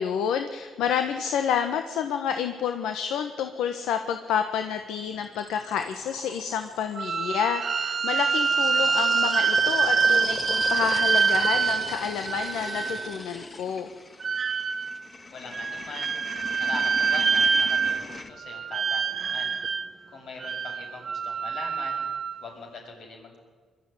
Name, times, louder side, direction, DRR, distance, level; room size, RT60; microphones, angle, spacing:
voice 1, 0.0-13.9, left 8 dB, 85° left, 7 dB, 1.3 m, -29 dB
sound 1, 4.6-7.0 7.9-18.3, left 3 dB, 30° left, 1.9 m, -38 dB
sound 2, 7.0-13.2 14.2-15.0 15.5-18.1 18.4-19.9 20.4-22.4, right 5 dB, 45° right, 1.2 m, -25 dB
voice 2, 15.3-16.1 16.6-19.5 20.1-22.0 22.4-23.4, left 3 dB, 65° left, 1 dB, 7.5 m, -41 dB
21.5 x 13.5 x 10.0 m, 1.5 s
cardioid pair, 90°, 0 cm